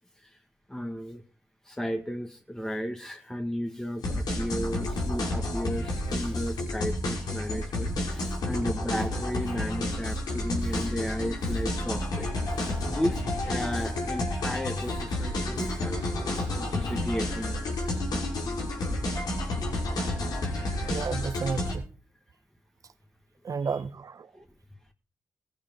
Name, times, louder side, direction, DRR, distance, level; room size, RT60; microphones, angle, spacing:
voice 1, 0.7-1.2 1.6-18.0 23.5-23.8 24.3-24.4, equal, 10° left, 1.9 m, -34 dB
sound 1, 4.0-21.8, left 1 dB, 85° left, 5.4 m, -30 dB
voice 2, 20.9-21.8 23.4-24.3, right 5 dB, 60° right, 1.0 m, -32 dB
17.5 x 9.1 x 5.4 m
cardioid pair, 50°, 7 cm